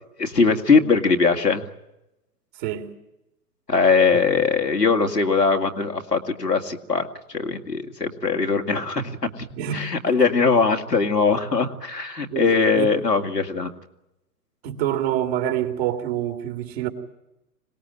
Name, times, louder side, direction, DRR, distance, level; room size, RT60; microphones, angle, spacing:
voice 1, 0.2-1.6 3.7-9.5 9.7-13.7, left 4 dB, 85° left, 2.5 m, -21 dB
voice 2, 9.5-10.0 12.3-12.9 14.6-16.9, right 11 dB, 40° right, 3.3 m, -27 dB
25.5 x 19.5 x 9.2 m
figure-of-eight pair, 110°, 47 cm